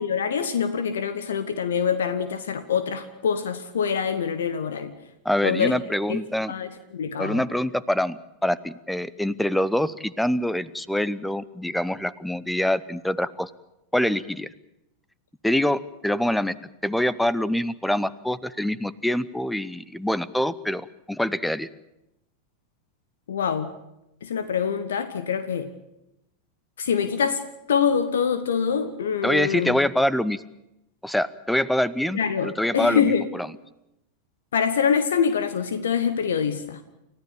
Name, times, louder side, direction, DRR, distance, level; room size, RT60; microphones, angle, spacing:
voice 1, 0.0-4.9 5.4-5.8 6.1-6.2 6.5-7.4 23.3-23.7 24.2-25.7 26.8-27.4 27.7-29.8 32.1-33.3 34.5-36.8, left 7 dB, 65° left, 1.3 m, -25 dB
voice 2, 5.2-6.5 7.2-13.5 13.9-14.5 15.4-16.5 16.8-21.7 29.2-30.4 31.0-33.5, left 1 dB, 5° left, 0.8 m, -25 dB
29.5 x 14.5 x 8.8 m
figure-of-eight pair, 90°, 0 cm